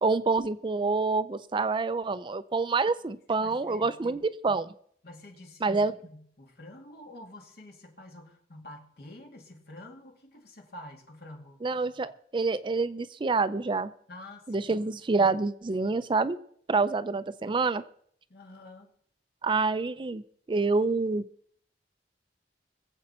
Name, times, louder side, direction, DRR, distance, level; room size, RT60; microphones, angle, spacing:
voice 1, 0.0-4.2 4.4-4.7 5.6-5.9 11.6-13.9 14.5-16.4 16.7-17.8 19.4-20.2 20.5-21.2, right 3 dB, 30° right, 13 dB, 0.4 m, -27 dB
voice 2, 3.4-4.2 5.0-5.6 6.0-11.6 14.1-14.7 18.3-18.9, left 1 dB, 60° left, 2 dB, 2.3 m, -48 dB
21.5 x 7.8 x 4.3 m, 0.64 s
head